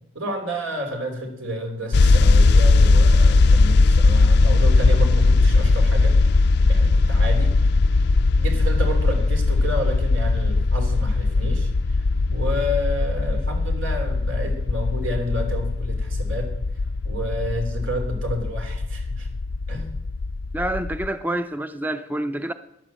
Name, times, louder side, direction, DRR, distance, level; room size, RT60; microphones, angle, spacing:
voice 1, 0.1-6.2 6.7-7.5 8.4-16.5 17.0-19.3 19.7-20.0, equal, 85° right, 3.1 m, -30 dB
sound 1, 1.9-21.1, left 3 dB, 60° left, 0.4 m, -19 dB
voice 2, 20.5-22.5, right 1 dB, 10° right, 0.5 m, -27 dB
13.5 x 10.5 x 7.5 m
head